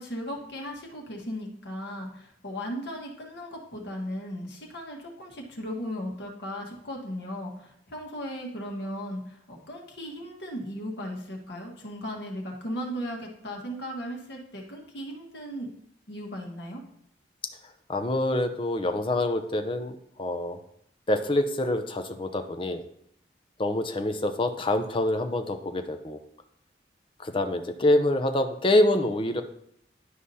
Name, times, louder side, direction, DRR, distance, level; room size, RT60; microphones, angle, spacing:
voice 1, 0.0-15.7 16.1-16.8, equal, 65° left, 0 dB, 1.6 m, -36 dB
voice 2, 17.9-20.6 21.1-22.8 23.6-26.2 27.2-29.4, left 1 dB, 30° left, 6 dB, 0.6 m, -26 dB
11.0 x 4.9 x 2.8 m, 0.73 s
head